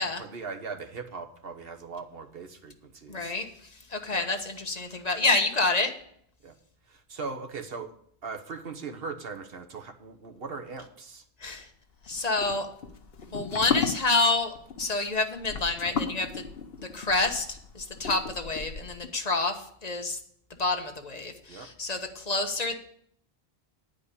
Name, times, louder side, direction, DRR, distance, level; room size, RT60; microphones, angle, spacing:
voice 1, 0.0-3.4 4.1-4.3 4.7-5.0 6.4-6.5 6.9-7.9 8.2-11.2 21.5-21.7, right 4 dB, 65° right, 7 dB, 1.3 m, -40 dB
voice 2, 3.1-5.9 11.4-11.7 12.0-12.7 13.3-16.4 16.8-20.2 20.6-22.7, left 3 dB, 40° left, 5 dB, 1.1 m, -28 dB
sound 1, 12.1-19.1, left 5 dB, 65° left, 1.1 m, -35 dB
10.0 x 5.2 x 8.3 m, 0.67 s
omnidirectional pair, 1.1 m